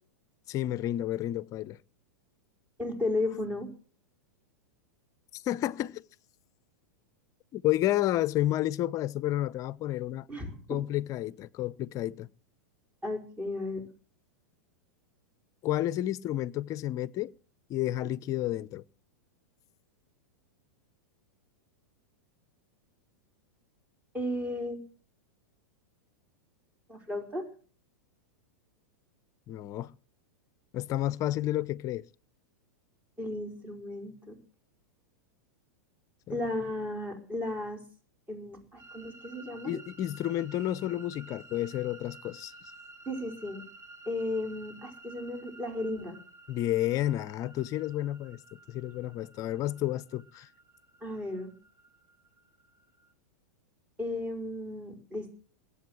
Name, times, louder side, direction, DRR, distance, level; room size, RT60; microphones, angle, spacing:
voice 1, 0.5-1.8 5.3-6.0 7.5-10.3 10.7-12.3 15.6-17.3 17.7-18.8 29.5-29.9 30.7-32.1 36.3-36.4 39.6-42.5 46.5-50.5, left 14 dB, 35° left, 0.7 m, -31 dB
voice 2, 2.8-3.7 10.3-10.8 13.0-13.8 24.1-24.8 26.9-27.4 33.2-34.3 36.3-37.8 38.3-39.8 43.0-43.6 44.0-46.2 51.0-51.5 54.0-55.3, left 1 dB, 15° right, 5.1 m, -34 dB
sound 1, 38.8-53.1, right 2 dB, 35° right, 3.6 m, -53 dB
21.5 x 8.6 x 7.7 m
hypercardioid pair, 105°, 9 cm